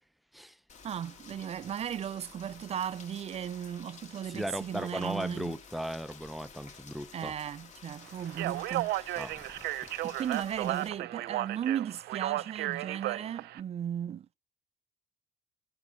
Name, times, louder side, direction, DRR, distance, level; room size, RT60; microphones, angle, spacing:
Rain, 0.7-10.9, left 5 dB, 45° left, 2.2 m, -52 dB
voice 1, 0.8-5.6 7.1-9.2 10.0-14.3, right 9 dB, 40° right, 0.5 m, -36 dB
voice 2, 4.3-7.3 9.2-9.4, equal, ahead, 0.6 m, -37 dB
Speech, 8.3-13.6, right 16 dB, 80° right, 0.6 m, -34 dB
10.0 x 6.2 x 8.2 m
cardioid pair, 110°, 17 cm